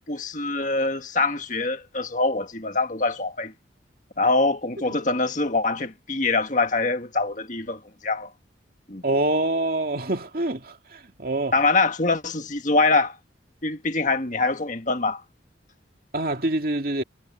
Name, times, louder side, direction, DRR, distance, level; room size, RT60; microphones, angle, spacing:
voice 1, 0.1-3.5 4.2-8.3 8.9-9.0 11.5-13.2 13.6-15.2, left 3 dB, 40° left, 1.6 m, -24 dB
voice 2, 9.0-11.5 16.1-17.0, right 2 dB, 50° right, 2.5 m, -25 dB
head